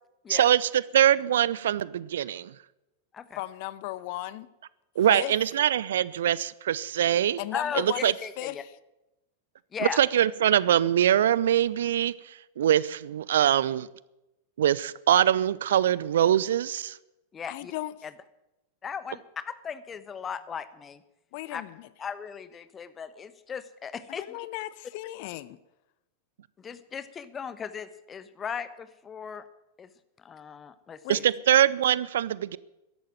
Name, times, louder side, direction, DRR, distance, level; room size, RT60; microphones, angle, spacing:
voice 1, 0.3-2.5 5.0-7.4 7.8-8.1 10.0-12.1 12.6-13.9 14.6-17.0 31.1-32.6, right 11 dB, 60° right, 0.5 m, -23 dB
voice 2, 3.4-4.5 5.1-5.3 7.4-8.7 17.5-17.9 21.3-21.9 24.1-25.6 31.0-31.2, left 17 dB, 45° left, 0.7 m, -36 dB
voice 3, 7.5-8.6 9.7-10.0 17.3-17.7 18.0-18.1 18.8-21.0 21.5-21.6 22.0-24.4 26.6-29.4 29.8-29.9 30.2-31.3, left 7 dB, 20° left, 1.2 m, -37 dB
13.5 x 11.5 x 9.0 m
figure-of-eight pair, 90°, 0 cm